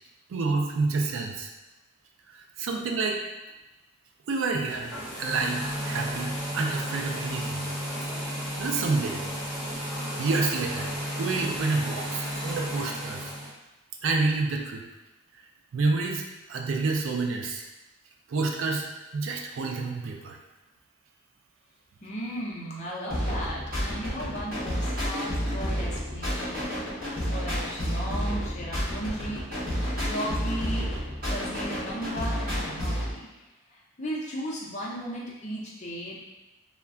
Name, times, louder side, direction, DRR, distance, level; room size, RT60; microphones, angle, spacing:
voice 1, 0.3-1.5 2.3-3.2 4.3-7.6 8.3-9.2 10.2-10.9 11.2-13.3 14.0-14.8 15.7-16.2 16.5-17.6 18.3-18.9 19.1-20.4, right 3 dB, 60° right, 2 dB, 0.4 m, -28 dB
sound 1, 4.7-13.5, equal, ahead, 0.9 m, -33 dB
voice 2, 22.0-26.8 27.3-29.7 30.1-30.9 31.3-33.4 33.7-36.2, equal, 35° left, -4 dB, 0.6 m, -36 dB
sound 2, 23.1-33.1, equal, 40° right, 1.1 m, -30 dB
2.3 x 2.2 x 3.6 m, 1.0 s
head